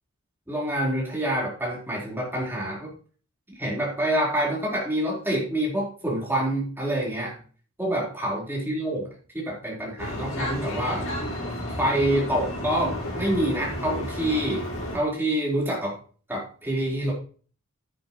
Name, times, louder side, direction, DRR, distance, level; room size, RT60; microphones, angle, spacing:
voice 1, 0.5-2.9 3.5-7.4 7.8-11.1 11.8-14.7 14.9-16.0 16.3-17.1, right 1 dB, 10° right, -4 dB, 4.5 m, -27 dB
sound 1, 10.0-15.0, left 1 dB, 70° left, 5.0 m, -32 dB
10.5 x 10.0 x 3.2 m, 0.41 s
head